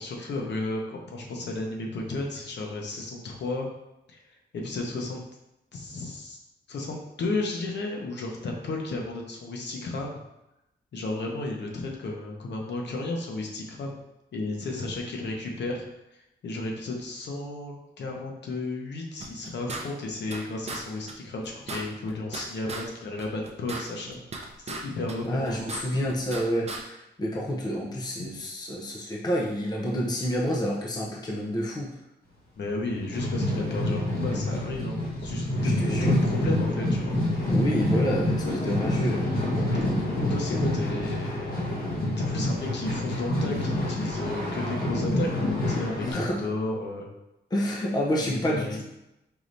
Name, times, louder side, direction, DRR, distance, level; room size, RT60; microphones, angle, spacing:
voice 1, 0.0-3.7 4.1-4.2 4.5-5.2 5.7-6.4 6.7-10.2 10.9-14.0 14.3-15.8 16.4-25.7 32.6-35.7 36.0-37.2 40.3-41.5 42.2-47.1 48.5-48.8, left 2 dB, 75° left, 0 dB, 0.8 m, -33 dB
sound 1, 19.2-20.4 20.7-20.8 21.1-21.2 21.4-22.9 23.2-24.8 25.1-26.4 26.7-26.8, right 3 dB, 35° right, 0.5 m, -36 dB
voice 2, 25.3-31.9 35.8-36.1 37.5-39.3 46.1-46.4 47.5-48.8, equal, 20° left, -2 dB, 0.6 m, -28 dB
sound 2, 32.8-46.1, left 1 dB, 55° left, 1.2 m, -27 dB
4.8 x 3.1 x 2.6 m, 0.89 s
wide cardioid pair, 175°, 18 cm